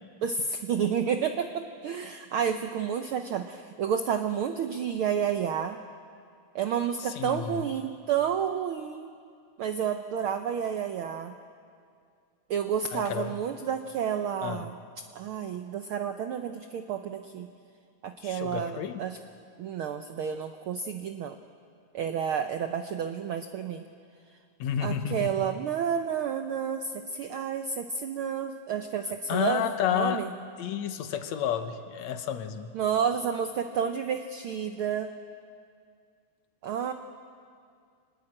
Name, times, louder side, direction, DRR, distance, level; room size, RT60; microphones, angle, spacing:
voice 1, 0.2-5.8 6.5-9.1 9.6-11.3 12.5-14.7 15.1-17.5 18.0-19.2 19.6-21.4 21.9-23.8 24.8-30.3 32.7-35.1 36.6-36.9, right 7 dB, 80° right, 7 dB, 1.2 m, -30 dB
voice 2, 7.0-7.7 12.9-13.4 14.4-14.7 18.2-19.0 24.6-25.5 29.3-30.3 30.6-32.7, left 9 dB, 70° left, 9 dB, 2.1 m, -31 dB
24.0 x 20.0 x 8.8 m, 2.3 s
omnidirectional pair, 3.4 m